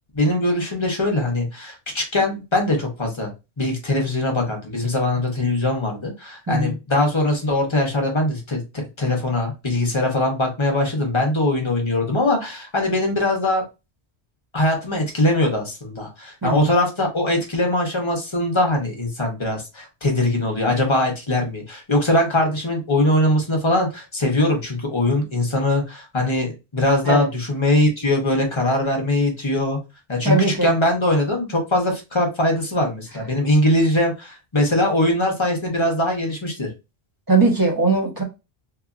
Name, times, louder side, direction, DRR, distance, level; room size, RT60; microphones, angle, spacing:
voice 1, 0.1-3.3 3.6-13.6 14.5-29.8 30.1-36.7, left 1 dB, 30° left, 0.9 m, -21 dB
voice 2, 16.4-16.7 27.0-27.3 30.2-30.7 33.5-33.6 37.3-38.2, right 3 dB, 20° right, 0.8 m, -20 dB
2.9 x 2.5 x 2.4 m
omnidirectional pair, 1.1 m